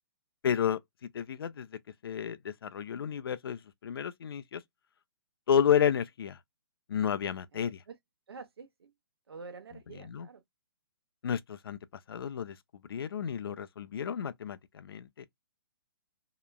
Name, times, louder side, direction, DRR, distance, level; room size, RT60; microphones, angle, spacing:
voice 1, 0.4-1.7 2.0-4.6 5.5-6.4 6.9-7.8 10.0-10.3 11.2-11.8 12.1-12.6 12.9-15.1, left 8 dB, 75° left, 0.4 m, -31 dB
voice 2, 7.5-7.9 8.3-8.9 9.3-10.4, right 4 dB, 80° right, 0.9 m, -48 dB
2.9 x 2.2 x 2.2 m
hypercardioid pair, 150°, 13 cm